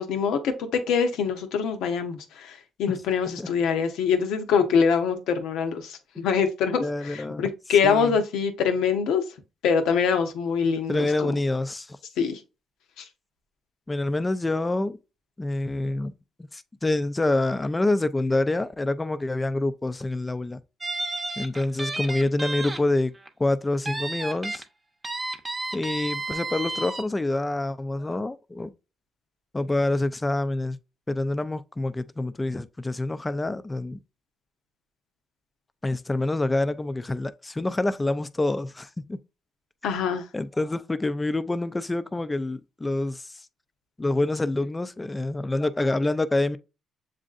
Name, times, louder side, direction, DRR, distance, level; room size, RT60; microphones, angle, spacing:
voice 1, 0.0-9.2 9.6-11.3 12.2-12.4 13.0-13.1 39.8-40.2, left 6 dB, 90° left, 0.7 m, -24 dB
voice 2, 6.8-7.5 7.8-8.2 10.9-12.0 13.9-15.0 15.4-16.1 16.4-20.6 21.4-23.1 23.4-24.6 25.7-28.7 29.5-30.8 31.1-34.0 35.8-39.2 40.3-43.4 44.0-46.6, left 2 dB, 20° left, 0.4 m, -27 dB
sound 1, 20.8-22.8 23.1-23.3 23.9-24.6 25.0-27.0, right 2 dB, 25° right, 0.7 m, -32 dB
7.3 x 2.5 x 2.4 m
cardioid pair, 90°, 0 cm